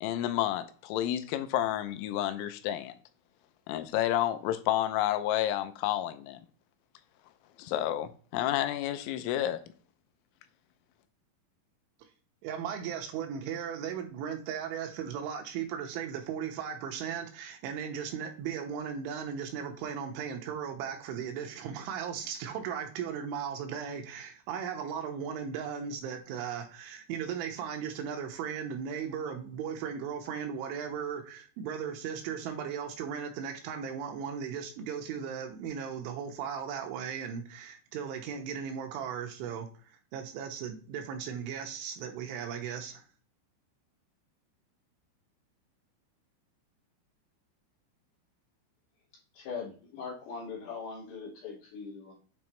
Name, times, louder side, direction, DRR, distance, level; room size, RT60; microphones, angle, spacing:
voice 1, 0.0-2.9 3.7-6.4 7.6-9.6, left 12 dB, 85° left, 3.2 m, -30 dB
voice 2, 12.4-39.7 40.1-43.0, right 7 dB, 85° right, 3.1 m, -37 dB
voice 3, 49.3-52.1, left 5 dB, 60° left, 3.3 m, -41 dB
8.8 x 3.4 x 3.1 m
omnidirectional pair, 5.7 m